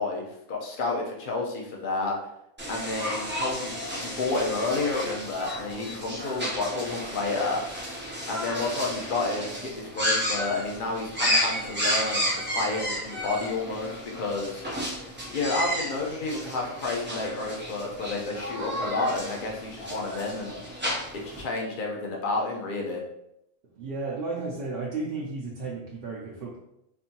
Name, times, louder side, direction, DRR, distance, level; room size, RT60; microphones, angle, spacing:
voice 1, 0.0-2.1 2.7-7.6 8.3-14.6 15.3-20.6 21.1-23.0, left 3 dB, 45° left, -1 dB, 0.8 m, -30 dB
sound 1, 2.6-21.4, equal, 15° right, 0.3 m, -32 dB
voice 2, 23.8-26.6, right 3 dB, 55° right, -4 dB, 0.7 m, -33 dB
4.4 x 2.7 x 2.8 m, 0.80 s
omnidirectional pair, 1.4 m